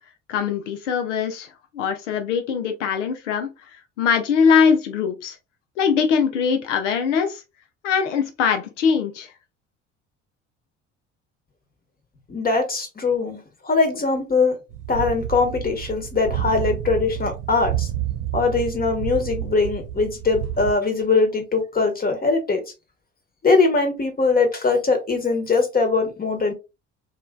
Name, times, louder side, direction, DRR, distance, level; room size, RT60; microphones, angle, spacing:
voice 1, 0.3-1.5 1.7-3.5 4.0-5.3 5.8-7.4 7.8-9.3, left 6 dB, 85° left, 0.6 m, -21 dB
voice 2, 12.3-13.4 13.6-14.6 14.9-17.9 18.3-22.6 23.4-26.5, left 4 dB, 25° left, 1.1 m, -21 dB
sound 1, 14.7-20.7, right 11 dB, 75° right, 0.8 m, -29 dB
3.0 x 2.3 x 2.2 m
hypercardioid pair, 60°, 36 cm